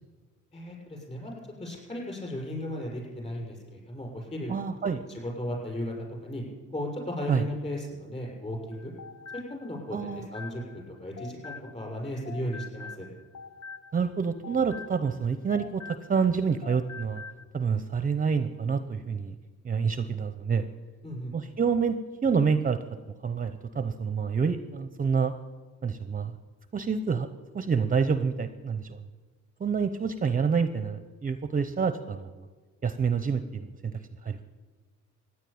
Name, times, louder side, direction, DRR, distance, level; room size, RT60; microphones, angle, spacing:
voice 1, 0.5-4.5 5.1-5.9 6.2-6.4 6.7-8.9 9.3-13.1 21.0-21.3, left 1 dB, 20° left, -1 dB, 6.8 m, -36 dB
voice 2, 4.5-5.0 7.3-7.4 9.9-10.3 13.9-17.2 17.5-19.4 19.6-20.7 21.3-22.8 23.2-25.3 25.8-26.4 26.7-27.3 27.5-29.0 29.6-32.4 32.8-34.4, right 6 dB, 30° right, 11 dB, 0.7 m, -28 dB
sound 1, 8.7-12.0 12.3-16.3 16.6-17.4, left 5 dB, 65° left, 1.0 m, -45 dB
15.5 x 9.7 x 8.6 m, 1.4 s
cardioid pair, 90°, 30 cm